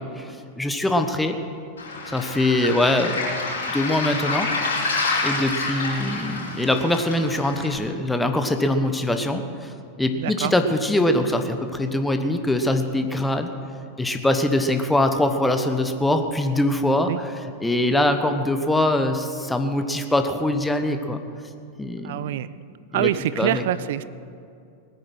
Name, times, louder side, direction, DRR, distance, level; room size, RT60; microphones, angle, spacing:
voice 1, 0.2-1.4 2.1-3.2 3.7-4.5 5.2-13.5 14.0-21.2 21.8-22.4 22.9-23.1 23.4-23.6, left 1 dB, 5° left, 7 dB, 1.2 m, -23 dB
Waves surf, 1.8-7.8, left 3 dB, 65° left, 4.6 m, -28 dB
voice 2, 10.1-10.5 17.1-17.2 22.0-22.5 22.9-24.0, right 12 dB, 55° right, 17 dB, 0.4 m, -25 dB
20.5 x 9.3 x 6.2 m, 2.5 s
figure-of-eight pair, 90°, 0 cm